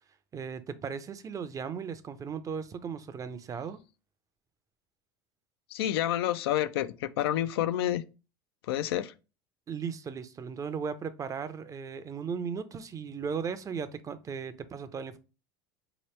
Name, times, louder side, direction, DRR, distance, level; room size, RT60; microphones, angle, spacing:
voice 1, 0.3-3.8 9.7-15.2, right 6 dB, 25° right, 0.5 m, -36 dB
voice 2, 5.7-8.0 8.7-9.1, left 12 dB, 80° left, 0.4 m, -29 dB
4.3 x 3.0 x 3.2 m
hypercardioid pair, 100°, 13 cm